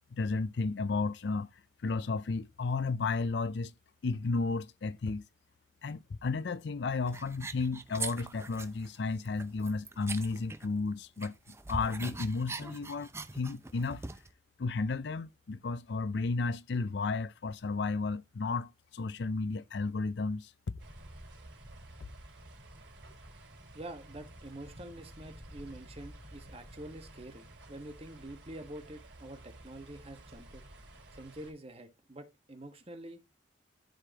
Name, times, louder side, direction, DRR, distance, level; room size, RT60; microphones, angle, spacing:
voice 1, 0.1-1.5 1.8-3.7 4.0-5.2 5.8-11.3 11.7-14.0 14.6-20.5, left 3 dB, 60° left, 0.5 m, -33 dB
sound 1, 7.1-8.9 9.2-10.9 11.2-14.3, right 3 dB, 15° right, 0.6 m, -42 dB
sound 2, 20.8-31.5, right 1 dB, 65° right, 4.2 m, -52 dB
voice 2, 23.7-30.6 31.1-33.2, right 1 dB, 30° right, 1.4 m, -47 dB
13.0 x 5.0 x 2.9 m
head